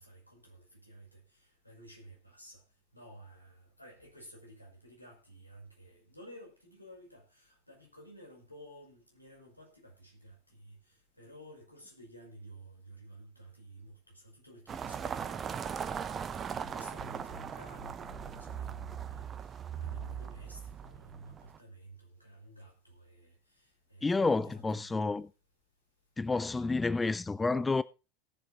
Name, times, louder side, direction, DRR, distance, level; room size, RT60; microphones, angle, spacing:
voice 1, 0.0-2.6 2.9-10.8 11.2-15.3 16.2-25.0, right 1 dB, 90° left, 5.6 m, -52 dB
sound 1, 14.7-21.6, right 7 dB, 25° right, 1.0 m, -39 dB
voice 2, 24.0-25.3 26.2-27.8, left 3 dB, 15° left, 0.5 m, -29 dB
17.5 x 7.7 x 4.0 m
figure-of-eight pair, 80°, 0 cm